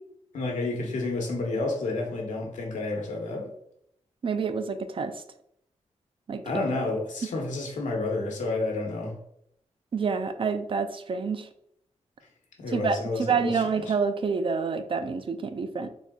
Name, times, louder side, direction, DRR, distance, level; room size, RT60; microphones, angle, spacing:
voice 1, 0.3-3.5 6.4-9.1 12.6-13.6, left 2 dB, 90° left, 0 dB, 1.0 m, -30 dB
voice 2, 4.2-5.1 6.3-6.4 9.9-11.5 12.7-15.9, right 5 dB, 45° right, 9 dB, 0.4 m, -28 dB
4.1 x 2.3 x 3.5 m, 0.73 s
cardioid pair, 75°, 12 cm